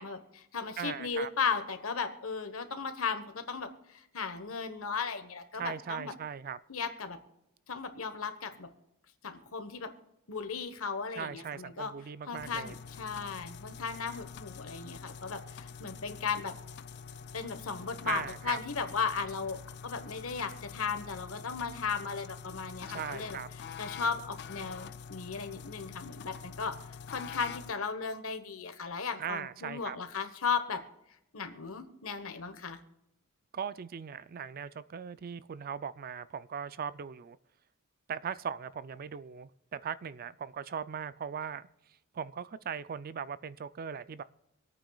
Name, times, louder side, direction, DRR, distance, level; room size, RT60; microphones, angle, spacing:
voice 1, 0.0-6.1 6.7-7.2 7.7-8.7 9.2-9.9 10.3-11.9 12.3-16.6 17.3-19.6 19.8-23.4 23.8-26.8 27.1-30.8 31.3-32.8, left 5 dB, 75° left, 9 dB, 1.2 m, -36 dB
voice 2, 0.8-1.3 5.5-6.6 11.1-12.7 18.0-18.6 22.9-23.5 29.2-30.0 33.5-37.4 38.1-41.7 42.1-44.2, right 7 dB, 45° right, 16 dB, 0.4 m, -39 dB
sound 1, 12.4-27.7, left 6 dB, 50° left, 0.4 m, -46 dB
26.0 x 9.0 x 2.3 m, 0.86 s
head